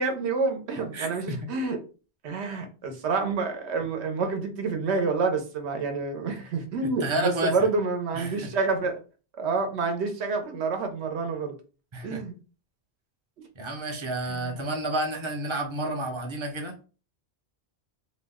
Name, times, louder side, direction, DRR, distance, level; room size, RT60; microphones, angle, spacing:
voice 1, 0.0-1.8 2.2-9.0 9.4-11.5 12.0-12.3 14.3-14.7, right 4 dB, 90° right, 5 dB, 1.0 m, -28 dB
voice 2, 0.9-1.4 6.8-7.7 8.1-8.5 11.9-12.2 13.6-16.7, right 1 dB, 35° right, 2 dB, 0.5 m, -30 dB
2.7 x 2.0 x 3.4 m, 0.35 s
omnidirectional pair, 1.1 m